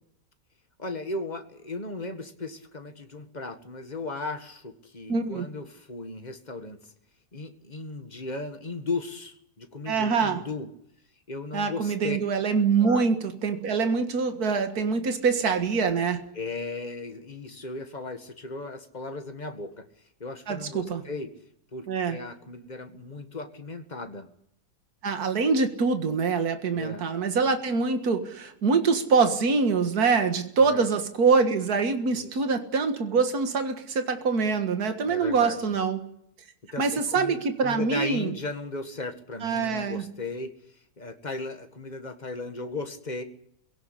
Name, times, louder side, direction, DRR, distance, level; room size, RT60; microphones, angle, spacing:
voice 1, 0.8-6.8 7.3-10.7 11.3-12.2 12.8-13.1 16.3-19.9 20.2-21.3 21.7-24.3 26.7-27.1 30.6-30.9 32.1-32.5 35.0-35.8 36.7-40.5 41.0-43.2, left 3 dB, 25° left, 1.8 m, -36 dB
voice 2, 5.1-5.5 9.9-10.4 11.5-16.2 20.5-21.0 21.9-22.2 25.0-36.0 36.8-38.3 39.4-40.0, right 5 dB, 65° right, 2.2 m, -24 dB
22.0 x 17.0 x 9.8 m
omnidirectional pair, 1.8 m